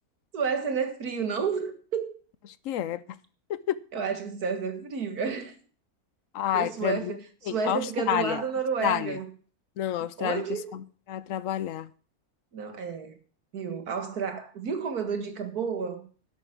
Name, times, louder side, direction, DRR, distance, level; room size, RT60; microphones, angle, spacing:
voice 1, 0.3-2.1 3.9-5.6 6.5-9.2 10.2-10.7 12.5-13.2 13.5-16.1, right 6 dB, 80° right, 2.2 m, -31 dB
voice 2, 2.6-3.2 3.5-3.8 6.3-7.2 7.5-8.4 8.8-9.2 9.8-10.4 10.7-11.9, left 11 dB, 65° left, 1.0 m, -29 dB
12.0 x 8.2 x 5.9 m
omnidirectional pair, 1.6 m